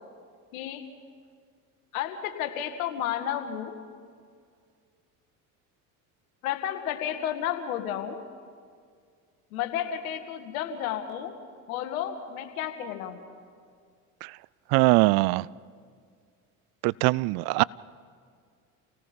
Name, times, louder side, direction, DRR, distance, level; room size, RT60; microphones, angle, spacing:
voice 1, 0.5-0.9 1.9-3.7 6.4-8.2 9.5-11.3 11.7-13.2, left 10 dB, 80° left, 1.8 m, -32 dB
voice 2, 14.7-15.5 16.8-17.6, right 22 dB, 60° right, 0.5 m, -21 dB
28.5 x 18.5 x 5.3 m
hypercardioid pair, 65°, 42 cm